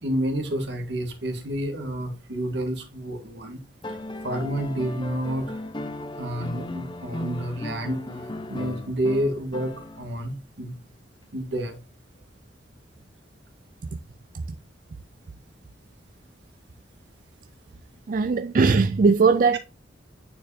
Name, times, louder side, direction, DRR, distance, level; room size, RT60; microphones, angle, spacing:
voice 1, 0.0-3.6 4.2-5.6 6.2-8.0 8.5-10.7 11.3-11.8, right 1 dB, 70° right, 1.7 m, -29 dB
sound 1, 3.8-10.3 11.7-11.8, left 1 dB, 25° left, 0.8 m, -36 dB
voice 2, 18.1-19.6, right 4 dB, 50° right, 0.4 m, -19 dB
9.2 x 4.5 x 2.8 m
head